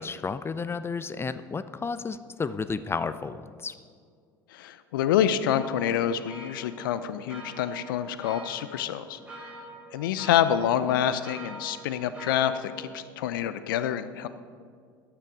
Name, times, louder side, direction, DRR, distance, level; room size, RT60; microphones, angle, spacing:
voice 1, 0.0-3.7, left 5 dB, 20° left, 14 dB, 0.6 m, -32 dB
voice 2, 4.5-9.2 9.9-14.3, left 10 dB, 75° left, 13 dB, 0.6 m, -27 dB
sound 1, 5.5-12.9, right 1 dB, 10° right, 4.1 m, -45 dB
14.0 x 9.9 x 5.1 m, 2.1 s
hypercardioid pair, 70°, 11 cm